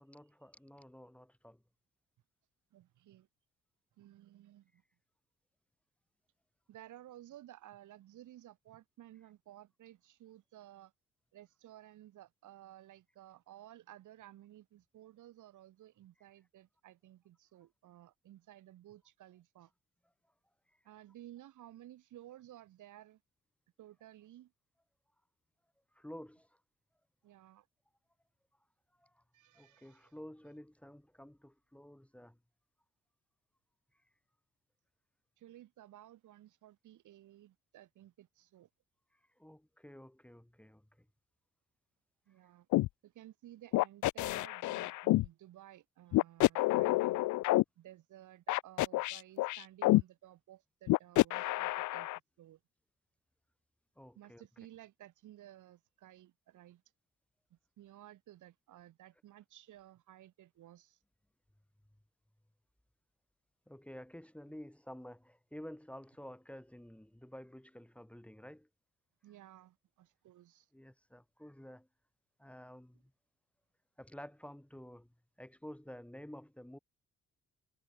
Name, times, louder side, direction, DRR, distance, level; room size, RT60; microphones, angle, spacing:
voice 1, 0.0-1.6 25.9-26.5 29.0-29.2 29.5-32.4 39.4-40.9 54.0-54.5 63.7-68.7 70.7-71.9 72.4-73.1 74.0-75.1 75.4-76.8, equal, 5° left, 2.8 m, -51 dB
voice 2, 2.7-3.3 4.0-4.8 6.7-10.9 11.3-19.7 20.8-23.2 23.8-24.5 27.2-27.7 29.3-30.1 35.4-38.7 42.3-42.7 43.0-47.2 47.8-52.1 52.4-52.6 54.1-56.8 57.5-61.0 69.2-70.7, right 13 dB, 80° right, 4.9 m, -56 dB
sound 1, 42.7-42.9 43.7-45.3 46.1-47.6 48.5-50.0 50.9-52.2, left 18 dB, 75° left, 0.5 m, -28 dB
cardioid pair, 90°, 30 cm